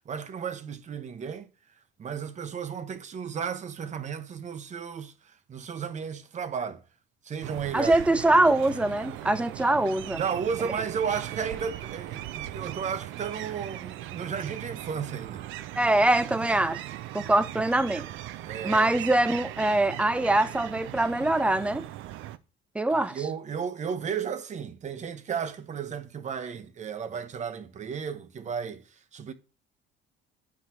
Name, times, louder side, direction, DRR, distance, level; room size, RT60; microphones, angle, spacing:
voice 1, 0.1-1.5 2.0-6.8 7.2-8.2 10.1-15.4 18.4-18.9 22.9-29.3, right 7 dB, 35° right, 0.7 m, -34 dB
sound 1, 7.4-22.4, right 14 dB, 75° right, 0.5 m, -39 dB
voice 2, 7.7-10.2 15.8-16.8 17.1-18.1 18.6-21.9 22.7-23.1, right 1 dB, 5° right, 0.5 m, -23 dB
9.5 x 4.7 x 2.9 m
cardioid pair, 115°, 21 cm